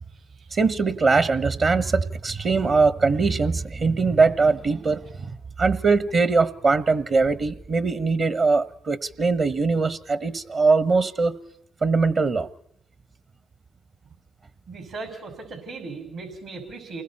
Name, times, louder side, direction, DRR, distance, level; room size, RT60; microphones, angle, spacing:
voice 1, 0.5-5.3 5.6-11.4 11.8-12.5, right 4 dB, 55° right, 1.2 m, -21 dB
voice 2, 14.7-17.0, right 3 dB, 75° right, 5.8 m, -37 dB
29.0 x 21.0 x 4.3 m
supercardioid pair, 55°, 0 cm